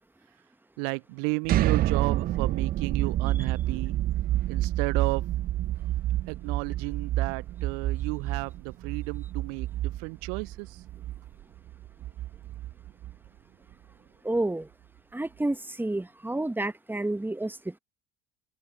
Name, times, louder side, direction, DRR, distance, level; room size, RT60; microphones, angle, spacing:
voice 1, 0.8-4.0 4.5-5.2 6.3-10.8, right 39 dB, 55° right, 0.9 m, -33 dB
sound 1, 1.4-13.3, right 14 dB, 30° right, 0.4 m, -29 dB
voice 2, 14.2-14.7 15.1-17.8, right 2 dB, 5° right, 1.6 m, -30 dB
figure-of-eight pair, 65°, 34 cm